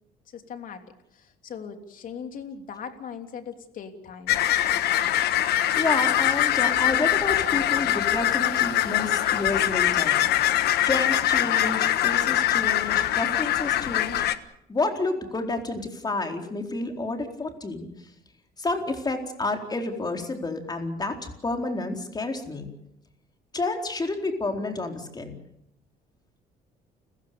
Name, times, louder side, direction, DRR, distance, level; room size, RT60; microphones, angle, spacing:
voice 1, 0.3-0.8 1.1-4.4, left 7 dB, 55° left, 6 dB, 3.2 m, -39 dB
sound 1, 4.3-14.4, left 12 dB, 75° left, 1.4 m, -23 dB
voice 2, 5.8-10.2 10.6-14.3 14.7-17.9 18.6-22.7 23.5-25.3, left 2 dB, 25° left, 4 dB, 4.2 m, -30 dB
30.0 x 16.0 x 7.0 m, 0.78 s
cardioid pair, 110°, 17 cm